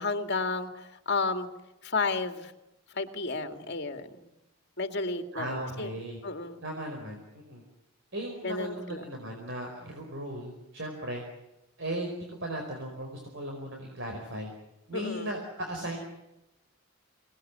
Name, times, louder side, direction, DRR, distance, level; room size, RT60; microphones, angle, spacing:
voice 1, 0.0-1.5 1.8-2.5 2.9-4.3 4.8-5.9 6.2-6.6 8.4-9.0 14.9-15.3, left 3 dB, 50° left, 7 dB, 2.3 m, -32 dB
voice 2, 5.3-6.2 6.6-7.6 8.1-11.2 11.8-14.5 14.9-16.0, right 1 dB, 55° right, 2 dB, 4.8 m, -37 dB
25.5 x 19.5 x 9.8 m, 0.94 s
head